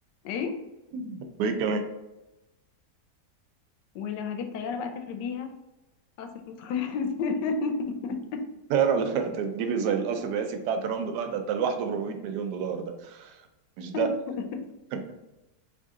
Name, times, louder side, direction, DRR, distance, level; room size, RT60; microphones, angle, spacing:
voice 1, 0.9-1.8 8.7-13.4 13.8-14.1 14.9-15.0, right 6 dB, 75° right, 6 dB, 1.1 m, -28 dB
voice 2, 3.9-5.5 6.2-8.4 13.9-14.1 14.5-14.6, left 5 dB, 85° left, 6 dB, 1.2 m, -31 dB
3.6 x 2.7 x 3.6 m, 0.99 s
omnidirectional pair, 1.9 m